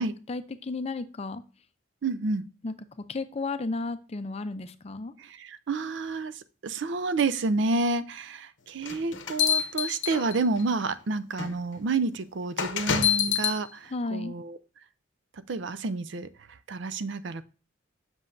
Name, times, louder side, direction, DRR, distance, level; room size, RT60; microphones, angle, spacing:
voice 1, 0.0-1.4 2.6-5.1 13.9-14.4, left 3 dB, 30° left, 11 dB, 0.5 m, -34 dB
voice 2, 2.0-2.4 5.2-14.6 15.3-17.5, right 3 dB, 60° right, 14 dB, 0.5 m, -30 dB
sound 1, 8.8-10.6 11.4-11.5 12.6-13.6, left 8 dB, 65° left, 0.8 m, -26 dB
7.6 x 6.1 x 2.6 m, 0.35 s
head